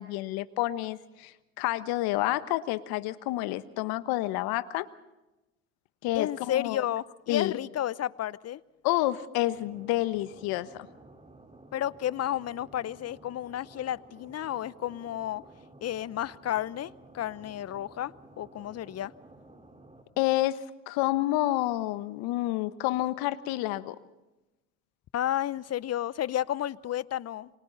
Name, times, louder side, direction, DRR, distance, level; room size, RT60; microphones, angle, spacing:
voice 1, 0.0-4.9 6.0-6.8 7.3-7.5 8.8-10.9 20.2-24.0, left 16 dB, 70° left, 1.3 m, -29 dB
voice 2, 6.1-8.6 11.7-15.4 15.8-19.1 25.1-27.5, left 11 dB, 40° left, 0.8 m, -32 dB
sound 1, 9.5-20.0, right 2 dB, 15° right, 4.1 m, -53 dB
29.5 x 25.5 x 4.1 m
hypercardioid pair, 65°, 38 cm